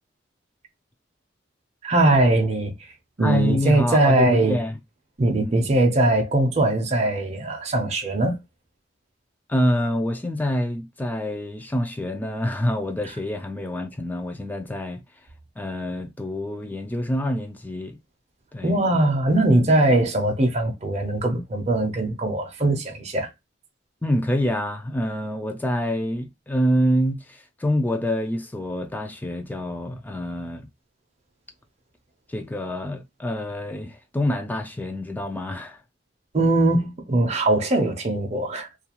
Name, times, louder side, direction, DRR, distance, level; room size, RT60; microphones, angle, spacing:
voice 1, 1.8-2.7 3.2-4.6 5.2-8.4 18.6-23.3 36.3-38.7, right 2 dB, 35° right, 0.6 m, -21 dB
voice 2, 3.2-4.8 5.4-5.7 9.5-15.0 15.6-18.0 18.5-18.8 24.0-30.7 32.3-35.8, equal, 10° left, 0.3 m, -26 dB
2.4 x 2.3 x 2.9 m
head